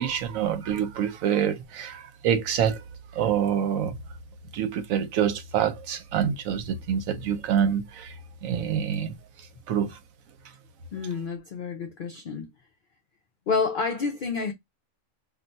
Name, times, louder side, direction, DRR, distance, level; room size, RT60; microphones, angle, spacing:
voice 1, 0.0-2.8 3.1-4.0 4.5-8.1 8.4-9.1 9.7-10.0, right 8 dB, 80° right, 1.0 m, -26 dB
voice 2, 10.9-12.5 13.5-14.5, left 5 dB, 75° left, 0.4 m, -29 dB
2.4 x 2.2 x 3.9 m
omnidirectional pair, 1.4 m